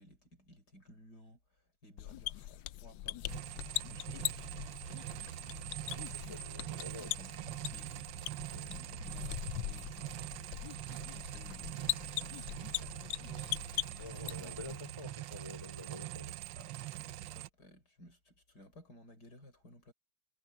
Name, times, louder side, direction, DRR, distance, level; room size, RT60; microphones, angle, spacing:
voice 1, 0.0-3.5 3.9-5.6 6.7-8.0 8.7-10.5 11.1-13.7 16.5-19.9, left 1 dB, 60° left, 6.3 m, -58 dB
sound 1, 2.0-14.7, left 15 dB, 80° left, 1.3 m, -41 dB
sound 2, 3.3-17.5, right 15 dB, 80° right, 1.4 m, -44 dB
voice 2, 5.8-7.1 8.5-8.7 14.0-16.4, left 2 dB, 15° left, 4.4 m, -49 dB
omnidirectional pair, 2.0 m